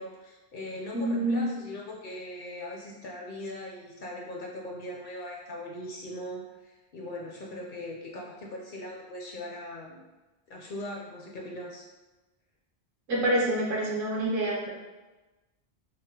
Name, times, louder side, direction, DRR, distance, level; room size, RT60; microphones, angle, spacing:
voice 1, 0.0-10.0 10.5-11.9, left 1 dB, 60° left, -2 dB, 0.6 m, -40 dB
voice 2, 0.9-1.4 13.1-14.7, right 1 dB, 60° right, -4 dB, 0.9 m, -27 dB
3.5 x 2.1 x 2.7 m, 1.1 s
omnidirectional pair, 1.1 m